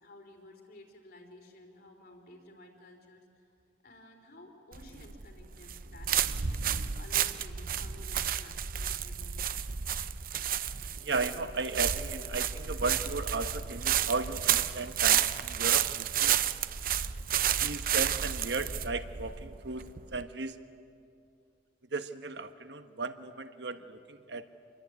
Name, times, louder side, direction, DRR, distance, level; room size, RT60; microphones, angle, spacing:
voice 1, 0.0-3.4 3.8-9.4, left 1 dB, 55° left, 2 dB, 4.2 m, -54 dB
sound 1, 4.7-20.2, right 9 dB, 50° right, 0.7 m, -31 dB
voice 2, 11.0-16.4 17.6-20.6 21.9-24.4, right 3 dB, 65° right, 9 dB, 1.4 m, -35 dB
28.0 x 22.0 x 9.6 m, 2.4 s
head